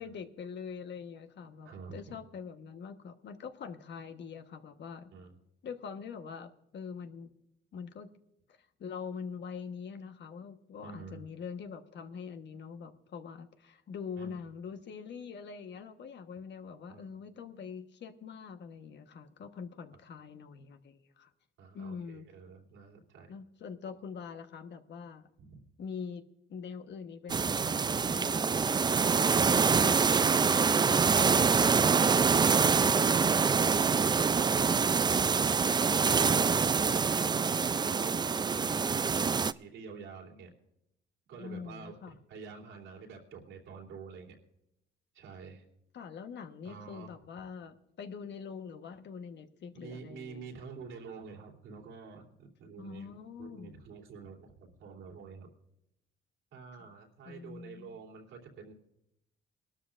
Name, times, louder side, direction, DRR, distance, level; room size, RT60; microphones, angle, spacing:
voice 1, 0.0-5.1 5.6-7.3 7.7-8.1 8.8-21.3 21.7-22.2 23.3-25.3 25.8-26.2 26.5-29.0 29.5-29.9 34.1-34.3 41.4-42.1 45.9-50.5 52.8-53.8 57.2-58.0, left 6 dB, 60° left, 7 dB, 1.2 m, -44 dB
voice 2, 1.6-2.2 5.1-5.4 10.8-11.2 14.2-14.3 16.9-17.1 21.6-23.4 23.8-23.9 25.4-25.6 33.8-40.5 41.3-44.4 45.1-45.6 46.6-47.2 49.7-55.5 56.5-58.7, right 5 dB, 85° right, -1 dB, 3.2 m, -48 dB
sound 1, 27.3-39.5, right 5 dB, 20° right, 0.3 m, -25 dB
21.5 x 12.5 x 2.5 m, 0.83 s
cardioid pair, 90°, 20 cm